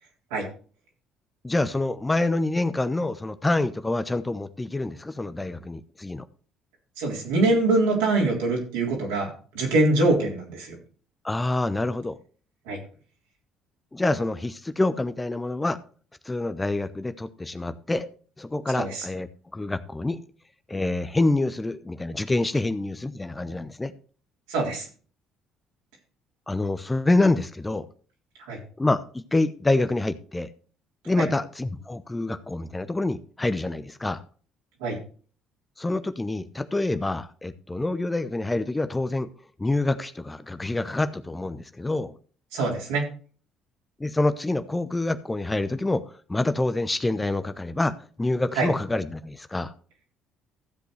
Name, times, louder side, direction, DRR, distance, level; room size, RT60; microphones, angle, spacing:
voice 1, 1.4-6.2 11.2-12.2 13.9-15.8 16.2-18.1 18.4-19.3 19.5-20.2 20.7-23.9 26.5-27.9 28.8-30.5 31.0-34.2 35.8-39.3 39.6-42.1 44.0-46.0 46.3-49.7, left 2 dB, 15° left, 11 dB, 0.8 m, -26 dB
voice 2, 7.0-10.8 12.7-12.8 18.8-19.0 24.5-24.9 28.5-28.6 31.2-31.3 34.8-35.0 42.5-43.1 48.6-48.7, right 2 dB, 75° right, -2 dB, 3.7 m, -24 dB
15.0 x 7.9 x 3.2 m, 0.41 s
figure-of-eight pair, 50°, 0 cm